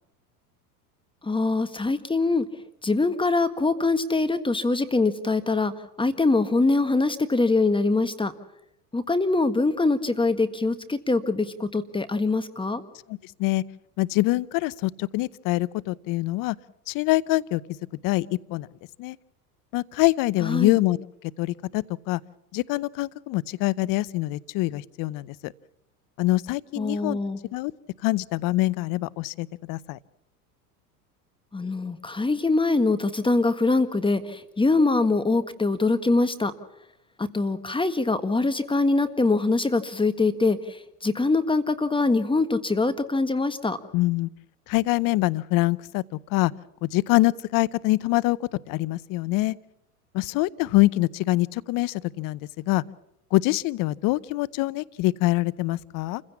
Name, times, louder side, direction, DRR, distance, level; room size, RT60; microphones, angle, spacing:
voice 1, 1.2-2.4 2.8-5.7 6.0-8.3 8.9-12.8 20.4-20.8 26.8-27.4 31.5-36.5 37.2-40.6 41.0-43.8, left 3 dB, 10° left, 11 dB, 1.6 m, -23 dB
voice 2, 13.1-13.6 14.0-16.6 16.9-17.6 18.0-18.7 19.0-19.2 19.7-21.1 21.4-22.2 22.5-25.5 26.2-27.2 27.5-27.7 28.0-30.0 43.9-44.3 44.7-46.0 46.3-46.5 46.8-48.4 48.7-49.5 50.1-52.4 52.7-52.8 53.3-56.2, left 19 dB, 45° left, 20 dB, 0.7 m, -24 dB
28.0 x 16.0 x 7.2 m, 0.84 s
hypercardioid pair, 90°, 45 cm